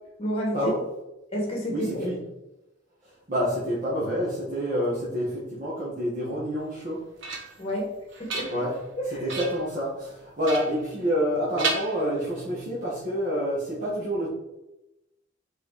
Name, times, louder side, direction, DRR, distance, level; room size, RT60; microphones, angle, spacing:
voice 1, 0.2-0.7 1.3-2.1 7.6-7.9 8.2-8.5 9.0-9.4, equal, 30° left, -2 dB, 2.2 m, -30 dB
voice 2, 1.7-2.2 3.3-7.0 8.5-8.7 9.2-14.3, equal, 40° right, -8 dB, 1.8 m, -28 dB
sound 1, 6.7-7.7 8.1-8.9 9.3-9.7 10.4-11.3 11.6-12.5, right 3 dB, 70° right, 1.3 m, -34 dB
4.8 x 4.7 x 4.9 m, 0.94 s
head